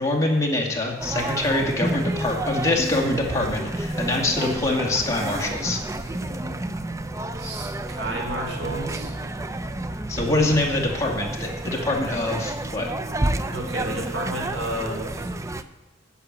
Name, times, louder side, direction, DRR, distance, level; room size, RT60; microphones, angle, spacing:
voice 1, 0.0-5.8 10.1-12.9, left 2 dB, 15° left, -1 dB, 2.2 m, -24 dB
sound 1, 1.0-15.6, right 1 dB, 15° right, 0.5 m, -30 dB
voice 2, 7.4-9.2 13.5-15.3, right 1 dB, 80° right, 0 dB, 4.0 m, -31 dB
10.0 x 6.8 x 9.0 m, 1.0 s
head